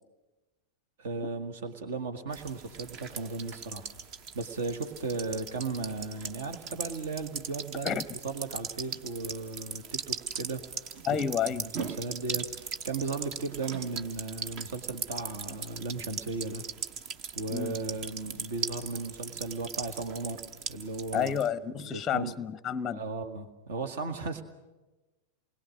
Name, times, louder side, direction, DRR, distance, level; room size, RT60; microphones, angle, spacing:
voice 1, 1.0-3.9 4.3-10.7 11.1-11.2 11.6-16.7 17.4-20.4 20.7-21.3 21.7-22.3 22.9-24.4, right 3 dB, 60° right, 9 dB, 1.7 m, -36 dB
sound 1, 2.3-21.5, right 6 dB, 40° right, 1.0 m, -39 dB
voice 2, 11.1-11.7 17.5-17.8 21.1-23.0, left 8 dB, 20° left, 19 dB, 0.7 m, -30 dB
28.5 x 21.5 x 6.4 m, 1.1 s
figure-of-eight pair, 90°, 0 cm